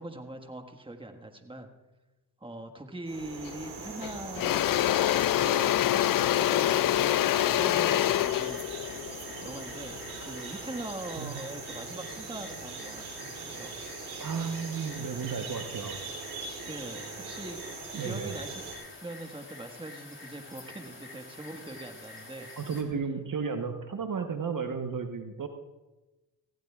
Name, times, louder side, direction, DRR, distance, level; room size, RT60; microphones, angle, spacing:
voice 1, 0.0-1.7 2.4-4.7 5.3-6.0 6.3-8.6 9.4-13.7 16.7-17.6 18.0-18.6 19.0-22.5, right 1 dB, 10° right, 5 dB, 1.6 m, -42 dB
sound 1, 3.1-18.8, right 4 dB, 85° right, 3.4 m, -41 dB
Engine / Drill, 3.5-3.7 4.0-10.2, left 14 dB, 50° left, 0.4 m, -26 dB
sound 2, 5.5-22.8, left 2 dB, 25° left, 3.4 m, -48 dB
voice 2, 14.2-16.0 17.9-18.3 22.6-25.5, right 5 dB, 45° right, 6 dB, 1.2 m, -33 dB
18.5 x 16.0 x 2.4 m, 1.1 s
supercardioid pair, 50°, 46 cm